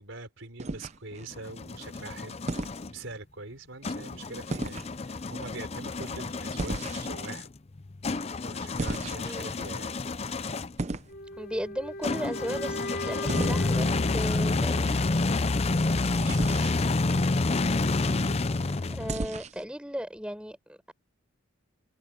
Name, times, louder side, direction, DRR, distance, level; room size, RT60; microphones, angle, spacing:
voice 1, 0.0-7.5 8.4-9.9 16.1-16.9 17.7-18.4, right 2 dB, 70° right, 4.4 m, -43 dB
sound 1, 0.6-1.3 2.5-2.8 4.5-4.9 6.6-7.3 8.8-9.5 10.8-11.1 13.3-13.6 16.3-16.8 19.1-19.6, right 2 dB, 35° right, 0.6 m, -34 dB
sound 2, 1.1-2.9 3.8-10.8 12.0-19.3, left 3 dB, 30° left, 0.5 m, -29 dB
voice 2, 9.2-9.5 11.4-15.0 18.9-20.9, equal, 5° right, 4.8 m, -36 dB
sound 3, 11.1-15.1, left 1 dB, 50° left, 3.4 m, -38 dB
head